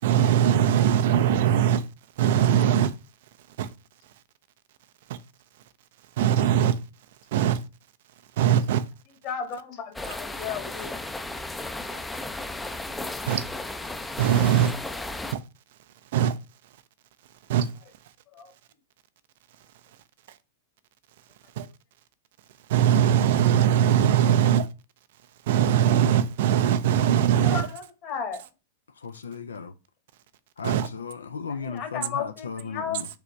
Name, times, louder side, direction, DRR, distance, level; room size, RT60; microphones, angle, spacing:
voice 1, 0.0-1.9 2.2-2.9 3.6-3.7 5.1-5.2 6.2-6.8 7.3-7.6 8.4-8.8 13.3-13.4 14.2-14.8 15.3-15.4 16.1-16.3 17.5-17.7 21.6-21.7 22.7-24.7 25.5-27.7 30.6-30.9, right 10 dB, 60° right, 0.4 m, -21 dB
voice 2, 9.2-10.9 11.8-12.0 18.3-18.5 27.3-28.4 31.5-33.0, left 7 dB, 40° left, 1.5 m, -34 dB
sound 1, 9.9-15.3, left 2 dB, 10° left, 0.4 m, -34 dB
voice 3, 29.0-29.7 30.6-33.1, left 5 dB, 80° left, 0.4 m, -36 dB
5.0 x 3.3 x 3.1 m
figure-of-eight pair, 95°, 0 cm